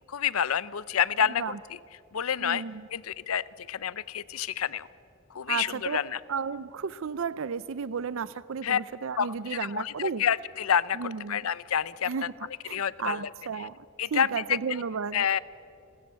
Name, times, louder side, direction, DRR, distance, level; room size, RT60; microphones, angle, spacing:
voice 1, 0.1-1.8 2.1-2.6 2.9-4.9 5.3-6.2 8.6-8.8 9.2-12.3 12.7-13.3 13.6-13.7 14.0-14.8 15.1-15.4, left 8 dB, 75° left, 19 dB, 0.6 m, -28 dB
voice 2, 2.4-2.9 5.5-6.0 6.3-10.2 10.9-11.4 12.1-12.3 12.7-13.9 14.1-15.2, right 6 dB, 65° right, 17 dB, 0.5 m, -33 dB
30.0 x 13.5 x 8.4 m, 2.5 s
head